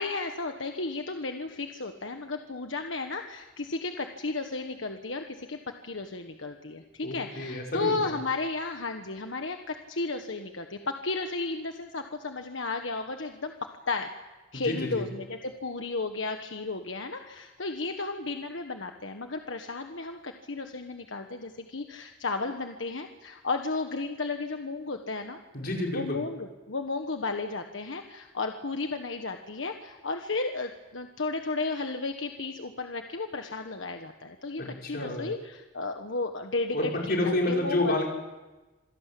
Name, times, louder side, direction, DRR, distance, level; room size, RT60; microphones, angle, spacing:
voice 1, 0.0-5.6 5.8-14.1 14.5-25.4 25.9-38.1, left 3 dB, 85° left, 5 dB, 1.5 m, -33 dB
voice 2, 7.0-8.1 14.5-15.0 25.5-26.2 34.6-35.3 36.7-38.1, left 1 dB, 55° left, -1 dB, 5.8 m, -29 dB
27.0 x 17.5 x 8.6 m, 1.1 s
head